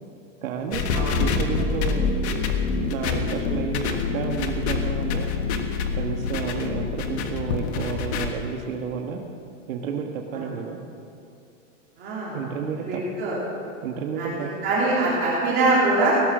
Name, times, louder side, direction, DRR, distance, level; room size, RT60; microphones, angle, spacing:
voice 1, 0.4-0.8 1.2-2.1 2.9-5.3 5.9-9.2 9.7-10.8 12.3-13.0 13.8-14.5, right 6 dB, 90° right, 2 dB, 1.6 m, -31 dB
sound 1, 0.7-8.3, left 5 dB, 55° left, 1.5 m, -26 dB
voice 2, 12.0-12.4 12.9-13.4 14.2-16.1, right 2 dB, 25° right, -7 dB, 3.3 m, -23 dB
17.0 x 12.0 x 6.2 m, 2.6 s
supercardioid pair, 175°, 39 cm